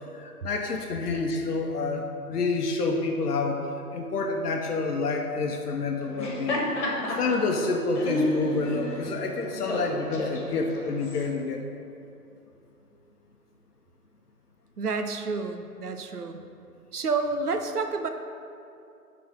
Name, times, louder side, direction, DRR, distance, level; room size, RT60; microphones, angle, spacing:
voice 1, 0.1-11.7, left 3 dB, 75° left, 1 dB, 0.9 m, -28 dB
Laughter, 6.0-11.3, left 1 dB, 45° left, 1.5 m, -31 dB
voice 2, 14.8-16.4 16.9-18.1, right 4 dB, 70° right, 6 dB, 0.8 m, -29 dB
9.1 x 4.0 x 5.3 m, 2.5 s
hypercardioid pair, 175°, 47 cm